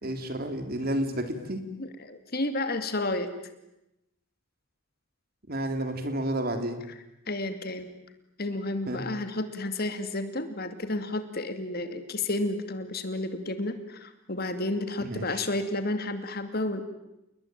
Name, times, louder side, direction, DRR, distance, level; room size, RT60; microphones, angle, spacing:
voice 1, 0.0-1.6 5.5-6.8 8.9-9.1 15.0-15.4, right 1 dB, 45° right, 8 dB, 3.3 m, -31 dB
voice 2, 1.8-3.3 7.3-7.9 8.4-16.8, left 2 dB, 45° left, 9 dB, 2.6 m, -31 dB
29.5 x 21.0 x 9.2 m, 0.88 s
head